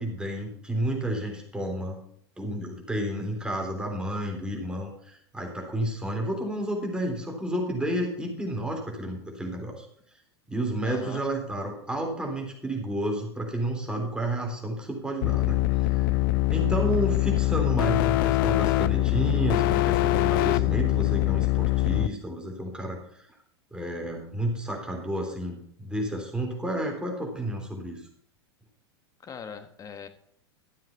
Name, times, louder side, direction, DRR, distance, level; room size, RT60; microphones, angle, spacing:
voice 1, 0.0-2.0 2.4-9.9 10.5-15.6 15.9-16.1 16.5-23.3 23.7-28.0, right 1 dB, 5° right, 0 dB, 3.4 m, -31 dB
voice 2, 10.8-11.2 29.2-30.1, left 6 dB, 25° left, 9 dB, 1.5 m, -40 dB
sound 1, 15.2-22.1, left 17 dB, 55° left, 0.5 m, -23 dB
13.0 x 7.5 x 5.5 m, 0.67 s
hypercardioid pair, 95°, 14 cm